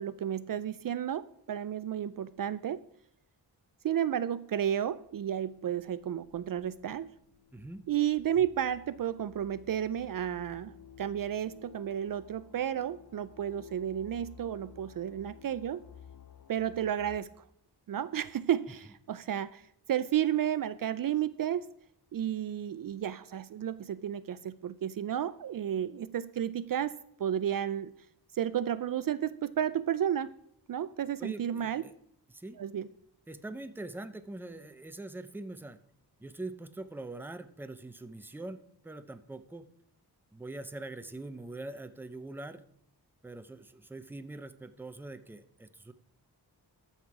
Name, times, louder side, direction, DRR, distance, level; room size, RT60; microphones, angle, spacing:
voice 1, 0.0-2.8 3.8-7.1 7.9-15.8 16.5-17.4 17.9-19.6 19.9-21.7 22.1-27.9 28.3-30.3 30.7-31.8 32.6-32.9, right 10 dB, 55° right, 15 dB, 0.5 m, -32 dB
sound 1, 4.7-17.2, left 7 dB, 55° left, 1.1 m, -55 dB
voice 2, 7.5-7.8 31.2-31.9 32.3-32.6 33.3-35.8 36.2-39.7 40.3-42.6 43.2-45.9, right 2 dB, 5° right, 10 dB, 0.6 m, -43 dB
13.5 x 5.7 x 4.7 m, 0.68 s
wide cardioid pair, 85°, 40 cm